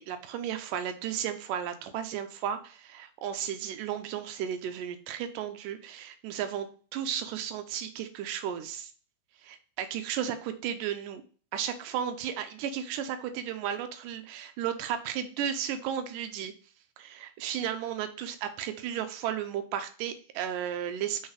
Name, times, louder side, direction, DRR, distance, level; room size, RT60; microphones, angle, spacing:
voice 1, 0.0-6.7 6.9-8.9 9.4-11.2 11.5-16.5 17.0-21.3, right 9 dB, 85° right, 8 dB, 2.3 m, -34 dB
5.6 x 5.2 x 3.4 m, 0.40 s
omnidirectional pair, 3.7 m